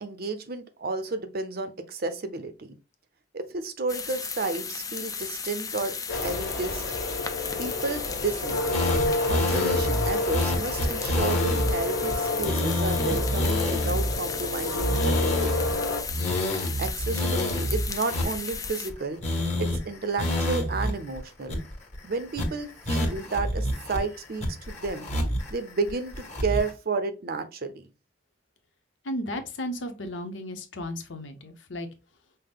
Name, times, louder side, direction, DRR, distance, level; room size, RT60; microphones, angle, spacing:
voice 1, 0.0-2.8 3.3-5.9 6.2-6.8 7.6-8.8 9.2-15.5 15.8-15.9 16.8-19.2 19.6-21.6 22.0-25.1 25.5-27.8, right 3 dB, 55° right, 10 dB, 0.6 m, -32 dB
sound 1, 3.9-18.9, left 6 dB, 20° left, 0.4 m, -35 dB
sound 2, 6.1-16.0, left 2 dB, 70° left, 1.4 m, -30 dB
sound 3, 8.7-11.7 12.1-12.2 12.4-14.1 14.8-15.7 16.1-18.9 19.2-19.8 20.2-20.9 21.2-21.3 21.5-22.0 22.4-22.5 22.9-24.0 24.4-25.5 25.9-26.7, left 1 dB, 40° left, 1.5 m, -27 dB
voice 2, 29.0-31.9, left 1 dB, 90° left, 7 dB, 0.8 m, -34 dB
5.6 x 2.1 x 3.5 m, 0.30 s
head